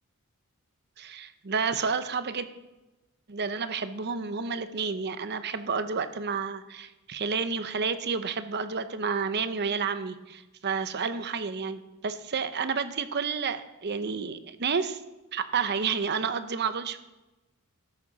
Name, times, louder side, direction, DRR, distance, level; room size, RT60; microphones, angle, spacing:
voice 1, 1.0-2.5 3.3-15.0 15.3-17.0, right 5 dB, 50° right, 11 dB, 0.7 m, -30 dB
13.0 x 10.0 x 4.0 m, 1.1 s
head